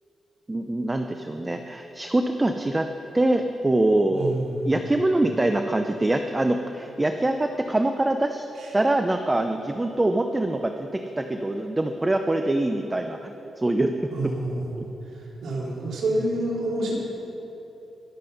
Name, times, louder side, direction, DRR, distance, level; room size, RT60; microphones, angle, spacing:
voice 1, 0.5-2.9 3.1-4.4 4.7-8.4 8.7-14.3 14.8-14.9, right 1 dB, 20° right, 6 dB, 0.7 m, -24 dB
voice 2, 4.1-4.7 8.6-8.7 14.1-14.8 15.1-17.0, right 1 dB, 85° right, -4 dB, 3.4 m, -28 dB
22.5 x 7.6 x 5.4 m, 3.0 s
cardioid pair, 85°, 0 cm